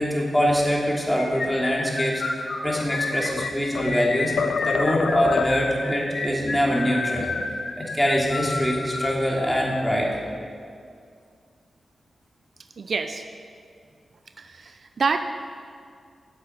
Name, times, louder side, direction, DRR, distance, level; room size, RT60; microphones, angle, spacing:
voice 1, 0.0-4.3 4.6-7.3 7.8-10.1, equal, 5° left, -3 dB, 3.1 m, -24 dB
sound 1, 1.2-9.2, left 3 dB, 65° left, 1.3 m, -30 dB
sound 2, 2.6-4.0 4.4-5.8, left 6 dB, 80° left, 0.3 m, -28 dB
voice 2, 12.8-13.2 14.4-15.2, right 4 dB, 65° right, 8 dB, 0.6 m, -28 dB
10.5 x 7.7 x 8.1 m, 2.2 s
cardioid pair, 55°, 0 cm